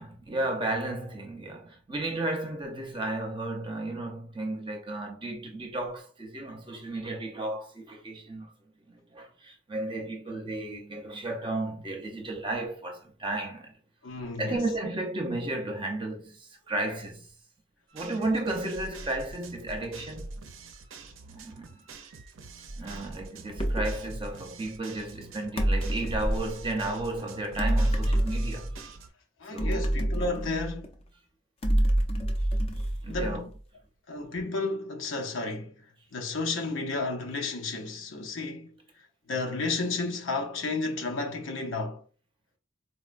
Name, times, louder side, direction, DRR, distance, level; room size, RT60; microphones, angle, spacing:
voice 1, 0.0-8.5 8.9-13.7 14.4-17.3 17.9-20.3 21.3-21.8 22.8-28.7 29.5-29.9 33.0-33.4, right 2 dB, 25° right, 0.6 m, -33 dB
voice 2, 14.0-14.7 29.4-31.0 33.1-33.5 34.1-35.8 36.1-38.8 39.3-42.0, left 3 dB, 80° left, 0.7 m, -32 dB
sound 1, 17.9-29.1, right 3 dB, 90° right, 0.5 m, -45 dB
sound 2, 23.6-24.0 25.6-26.5 27.6-28.8 29.6-30.9 31.6-33.5, right 1 dB, 30° left, 0.5 m, -27 dB
4.0 x 2.1 x 2.5 m
head